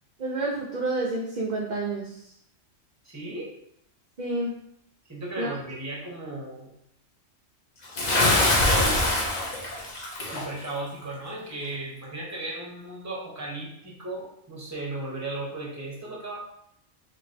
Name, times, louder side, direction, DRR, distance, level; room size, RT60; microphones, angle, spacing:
voice 1, 0.2-2.2 4.2-4.5 5.4-5.6, right 2 dB, 55° right, -2 dB, 0.5 m, -29 dB
voice 2, 3.0-3.5 5.1-6.7 8.4-9.3 10.3-16.4, right 2 dB, 15° right, -4 dB, 0.9 m, -36 dB
Bathtub (filling or washing) / Splash splatter, 8.0-10.5, left 2 dB, 40° left, 0.7 m, -23 dB
3.0 x 2.6 x 4.1 m, 0.72 s
omnidirectional pair, 1.3 m